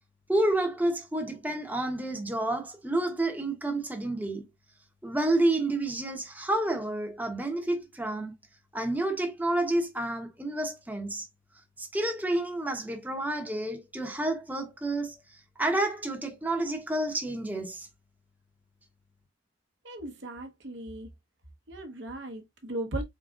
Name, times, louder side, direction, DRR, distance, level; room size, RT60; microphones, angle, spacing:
voice 1, 0.3-4.5 5.0-8.3 8.7-11.3 11.8-15.2 15.6-17.9, right 1 dB, 10° right, 0.8 m, -29 dB
voice 2, 19.8-21.1 21.7-23.0, right 1 dB, 60° right, 0.9 m, -37 dB
4.0 x 3.8 x 2.3 m
head